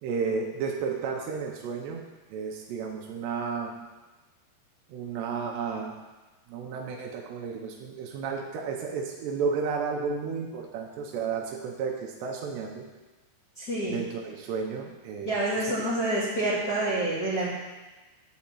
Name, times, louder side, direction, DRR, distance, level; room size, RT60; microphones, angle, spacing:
voice 1, 0.0-2.0 2.3-3.7 4.9-5.9 6.5-12.9 13.9-15.6, right 5 dB, 80° right, 1 dB, 2.8 m, -32 dB
voice 2, 13.6-14.0 15.3-17.5, right 1 dB, 30° left, -11 dB, 1.8 m, -27 dB
10.5 x 4.1 x 7.4 m, 1.2 s
omnidirectional pair, 5.2 m